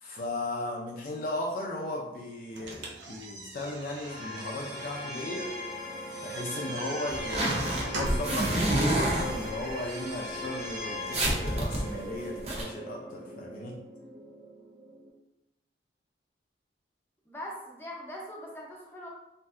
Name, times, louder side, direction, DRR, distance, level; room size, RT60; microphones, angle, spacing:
voice 1, 0.0-5.6 6.2-13.8, left 1 dB, 50° left, -1 dB, 0.3 m, -36 dB
sound 1, 2.5-8.4, right 2 dB, 80° right, 0.6 m, -42 dB
sound 2, 4.0-15.1, left 1 dB, 65° right, 0.9 m, -39 dB
sound 3, 7.1-9.9 10.4-10.5 10.8-10.9 11.1-12.6, right 1 dB, 35° right, 0.6 m, -28 dB
voice 2, 17.3-19.1, equal, 10° left, -4 dB, 0.6 m, -42 dB
3.2 x 2.5 x 2.4 m, 0.91 s
head